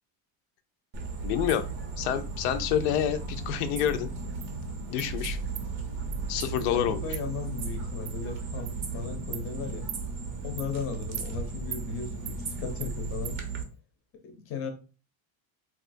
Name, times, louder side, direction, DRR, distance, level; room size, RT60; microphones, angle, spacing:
sound 1, 0.9-13.6, right 4 dB, 30° right, 0.5 m, -35 dB
voice 1, 1.2-1.7 2.0-4.1 4.9-5.4 6.3-7.0, left 10 dB, 90° left, 0.6 m, -28 dB
Insect, 3.9-4.0 4.4-4.5 5.0-5.1 5.6-5.7 6.1-6.2 6.6-6.7 7.1-7.2 7.6-7.7 8.1-8.2 8.7-8.8 9.3-9.5 9.9-10.0 10.6-10.7 11.1-11.3 11.7-11.8 12.3-12.4 12.8-12.9 13.2-13.4, right 12 dB, 75° right, 0.5 m, -39 dB
voice 2, 6.7-9.9 10.4-13.4 14.2-14.7, left 5 dB, 30° left, 0.6 m, -36 dB
3.7 x 2.3 x 2.5 m
cardioid pair, 165°, 43 cm